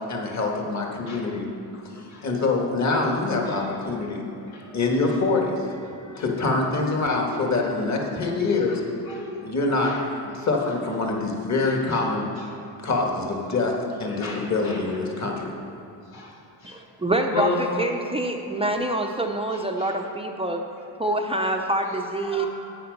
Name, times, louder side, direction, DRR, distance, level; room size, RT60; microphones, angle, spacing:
voice 1, 0.0-1.5 2.2-4.2 4.7-5.7 6.2-8.8 9.4-12.2 12.8-15.5, left 3 dB, 40° left, 0 dB, 1.8 m, -25 dB
voice 2, 1.7-2.3 3.5-3.6 4.4-4.8 5.9-6.2 9.1-10.1 11.9-12.0 14.1-14.8 16.1-16.3 16.6-16.8 17.3-17.6 19.8-19.9 21.8-21.9 22.1-22.5, left 4 dB, 90° left, -3 dB, 2.6 m, -34 dB
voice 3, 16.6-20.6 21.0-22.5, right 1 dB, 15° right, 2 dB, 0.6 m, -26 dB
10.0 x 8.7 x 5.4 m, 2.9 s
cardioid pair, 115°, 45 cm